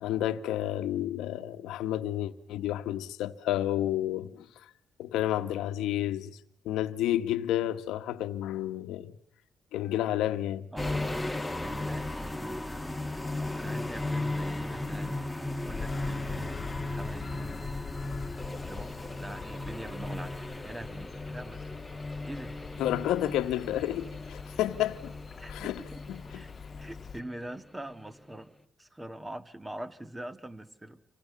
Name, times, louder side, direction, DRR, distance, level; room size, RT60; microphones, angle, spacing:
voice 1, 0.0-4.4 5.0-6.4 6.6-9.1 9.7-10.7 22.8-25.1 25.5-25.8 26.1-26.4, left 12 dB, 90° left, 1.3 m, -30 dB
voice 2, 10.7-12.7 13.4-15.2 15.6-17.8 18.6-18.9 19.2-21.8 22.2-22.6 25.4-26.0 26.3-28.5 28.8-31.0, right 1 dB, 15° right, 1.6 m, -43 dB
sound 1, 10.8-27.6 27.9-28.1, left 2 dB, 5° left, 1.5 m, -36 dB
Bird vocalization bird call bird song, 15.6-27.2, left 6 dB, 45° left, 1.4 m, -43 dB
27.5 x 26.0 x 7.1 m
cardioid pair, 90°, 0 cm